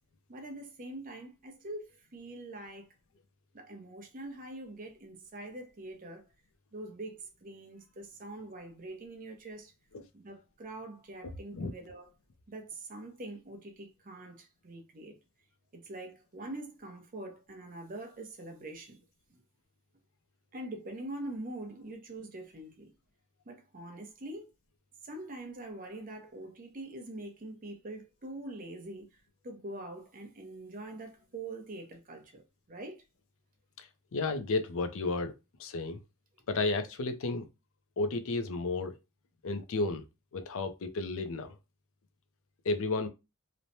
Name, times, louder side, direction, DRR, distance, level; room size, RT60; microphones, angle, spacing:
voice 1, 0.3-2.9 3.5-6.2 6.7-9.7 10.1-12.1 12.5-15.1 15.7-19.0 19.3-19.4 20.5-22.9 23.5-24.5 25.0-29.1 29.4-32.4 32.7-33.0, right 2 dB, 40° right, 0.7 m, -44 dB
voice 2, 11.2-11.7 33.8-35.3 35.6-36.0 36.5-37.5 38.0-39.0 39.4-40.0 40.3-41.5 42.6-43.1, left 3 dB, 65° left, 0.5 m, -32 dB
3.1 x 2.1 x 2.6 m
head